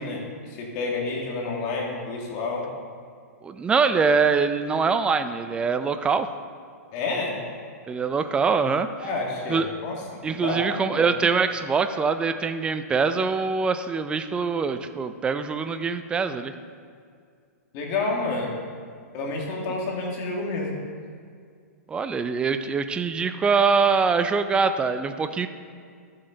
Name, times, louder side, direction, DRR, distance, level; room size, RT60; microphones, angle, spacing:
voice 1, 0.0-2.6 6.9-7.4 9.0-10.0 10.4-11.0 17.7-18.6 19.1-20.7, left 3 dB, 40° left, -1 dB, 2.3 m, -29 dB
voice 2, 3.4-6.3 7.9-8.9 9.5-9.7 10.2-16.5 21.9-25.5, right 5 dB, 10° right, 10 dB, 0.4 m, -23 dB
12.5 x 7.6 x 3.9 m, 2.2 s
hypercardioid pair, 140°, 9 cm